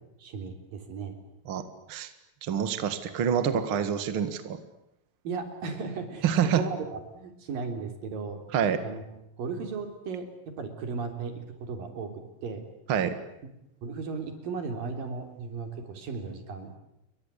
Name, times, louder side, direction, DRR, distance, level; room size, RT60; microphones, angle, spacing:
voice 1, 0.2-1.2 5.2-8.4 8.8-9.0 9.4-12.6 13.8-16.8, right 4 dB, 50° right, 6 dB, 4.9 m, -36 dB
voice 2, 1.5-2.1 2.4-4.6 6.2-6.6 8.5-8.8 12.9-13.2, right 8 dB, 80° right, 10 dB, 1.1 m, -27 dB
30.0 x 23.0 x 8.4 m, 0.84 s
omnidirectional pair, 5.7 m